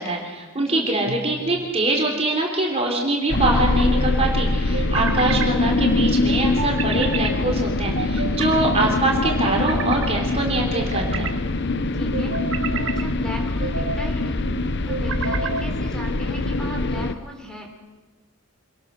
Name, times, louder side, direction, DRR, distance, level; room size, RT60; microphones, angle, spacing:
voice 1, 0.0-11.3, right 2 dB, 30° right, 0 dB, 3.4 m, -24 dB
voice 2, 0.6-0.9 11.9-12.3 12.7-14.6 14.8-17.7, equal, 5° left, 1 dB, 3.8 m, -37 dB
sound 1, 1.1-1.7 3.1-3.9 4.7-5.5 6.6-7.3 7.9-8.6 9.2-10.1 10.7-11.4 12.1-13.0 13.6-14.1 14.9-15.7, right 5 dB, 65° right, 1.7 m, -30 dB
sound 2, 3.3-17.1, left 2 dB, 55° left, 1.0 m, -23 dB
27.0 x 20.0 x 6.5 m, 1.3 s
head